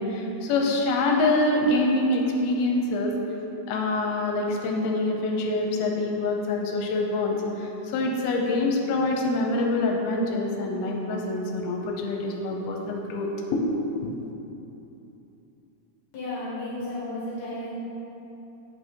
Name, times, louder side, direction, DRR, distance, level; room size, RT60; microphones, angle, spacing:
voice 1, 0.0-3.2 3.7-13.6 14.0-14.1, left 2 dB, 80° left, 1 dB, 2.6 m, -25 dB
voice 2, 16.1-17.8, left 1 dB, 55° left, -8 dB, 2.4 m, -33 dB
8.3 x 5.4 x 4.7 m, 3.0 s
omnidirectional pair, 4.5 m